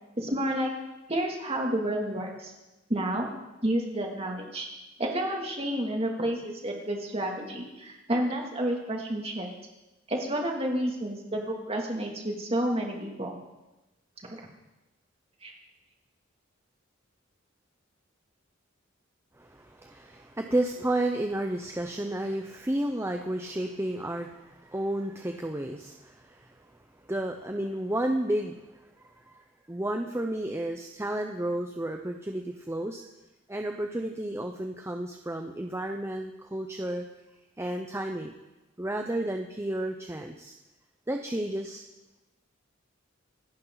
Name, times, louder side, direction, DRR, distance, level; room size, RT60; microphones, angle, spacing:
voice 1, 0.2-0.7 1.1-2.5 2.9-3.3 3.6-4.7 5.0-9.5 10.1-13.4 14.2-14.4 15.4-15.5, right 1 dB, 30° right, 0 dB, 2.8 m, -30 dB
voice 2, 19.4-26.7 27.1-33.1 33.5-37.0 37.6-38.3 38.8-40.5 41.1-41.8, right 1 dB, 15° right, 3 dB, 0.9 m, -32 dB
27.0 x 11.5 x 4.1 m, 1.0 s
head